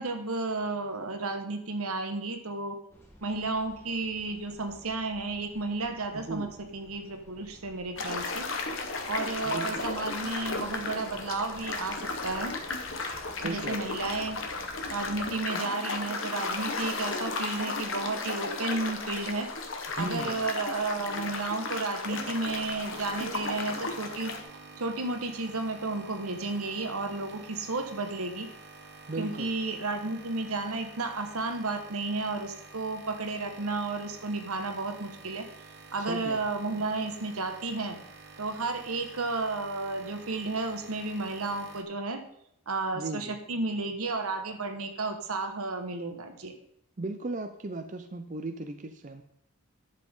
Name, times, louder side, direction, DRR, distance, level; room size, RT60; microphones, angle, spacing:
voice 1, 0.0-2.8 3.2-6.5 6.7-8.5 9.1-12.0 12.2-12.5 13.4-14.4 14.9-19.5 20.0-24.3 24.8-28.5 29.2-35.5 35.9-38.0 38.4-42.2 42.7-46.5, right 3 dB, 80° right, 5 dB, 1.4 m, -32 dB
sound 1, 2.9-15.4, equal, 10° left, 1.5 m, -53 dB
voice 2, 6.1-6.5 9.4-9.9 13.3-13.9 19.9-20.4 29.1-29.5 36.0-36.4 42.9-43.4 47.0-49.2, right 2 dB, 35° right, 7 dB, 0.5 m, -36 dB
sound 2, 8.0-24.4, left 3 dB, 60° left, 1.2 m, -34 dB
sound 3, 22.1-41.8, right 3 dB, 50° right, 1.2 m, -49 dB
11.0 x 7.5 x 3.7 m, 0.74 s
head